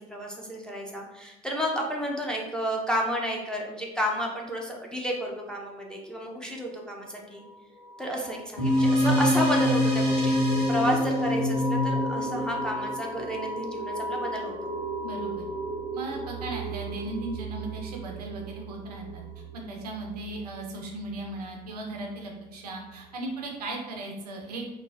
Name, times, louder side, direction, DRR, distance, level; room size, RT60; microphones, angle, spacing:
voice 1, 0.0-7.4 8.0-14.7, equal, 5° left, -2 dB, 0.4 m, -31 dB
sound 1, 7.4-21.8, right 1 dB, 65° left, 0.8 m, -36 dB
sound 2, 8.6-13.4, left 1 dB, 90° left, 1.0 m, -24 dB
voice 2, 15.0-15.5 15.9-24.7, right 2 dB, 75° right, 1 dB, 0.5 m, -37 dB
3.1 x 2.1 x 2.4 m, 0.98 s
figure-of-eight pair, 55°, 20 cm